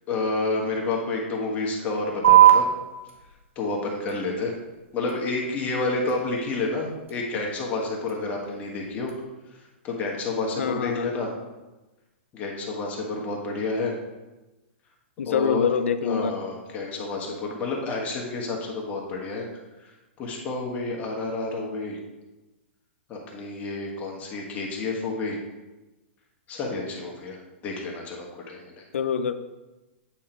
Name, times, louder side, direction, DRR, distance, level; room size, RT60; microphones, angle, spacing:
voice 1, 0.1-2.7 3.5-4.5 4.9-9.1 9.8-11.3 12.3-13.9 15.2-15.7 16.0-19.5 20.2-22.0 23.1-25.4 26.5-27.4 27.6-28.8, left 3 dB, 25° left, -1 dB, 1.3 m, -29 dB
sound 1, 2.2-9.2, right 12 dB, 90° right, 1.2 m, -24 dB
voice 2, 10.6-11.1 15.2-16.3 28.9-29.3, left 7 dB, 85° left, 10 dB, 0.5 m, -25 dB
8.6 x 3.7 x 4.4 m, 1.1 s
hypercardioid pair, 150°, 7 cm